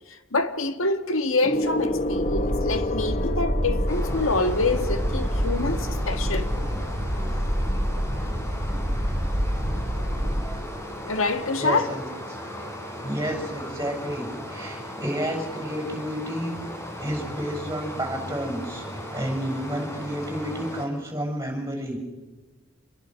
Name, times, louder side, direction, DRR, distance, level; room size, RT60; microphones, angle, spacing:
voice 1, 0.3-6.5 11.1-11.9, left 3 dB, 80° left, 1.8 m, -26 dB
Gong, 1.4-11.2 12.1-12.4, left 1 dB, 35° left, 0.8 m, -33 dB
sound 1, 1.6-11.1, equal, 35° right, 3.2 m, -27 dB
Stream, 3.9-20.9, equal, 15° left, 3.5 m, -37 dB
voice 2, 11.6-12.1 13.0-16.6 17.0-22.0, equal, 15° right, 6.8 m, -30 dB
27.0 x 22.0 x 6.4 m
head